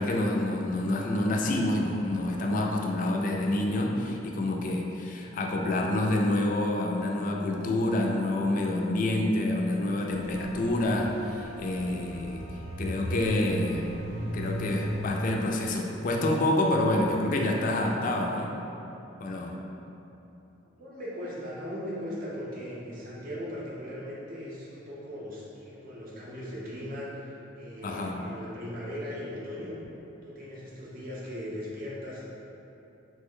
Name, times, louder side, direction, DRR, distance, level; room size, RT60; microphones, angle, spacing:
voice 1, 0.0-12.4 12.8-13.9 14.3-18.5 19.2-19.6 27.8-28.3, left 1 dB, 45° left, 0 dB, 0.3 m, -27 dB
sound 1, 10.1-15.1, equal, 85° right, 0.4 m, -36 dB
voice 2, 20.8-29.7 30.2-32.2, equal, 45° right, -6 dB, 0.7 m, -38 dB
3.1 x 2.1 x 3.6 m, 3.0 s
head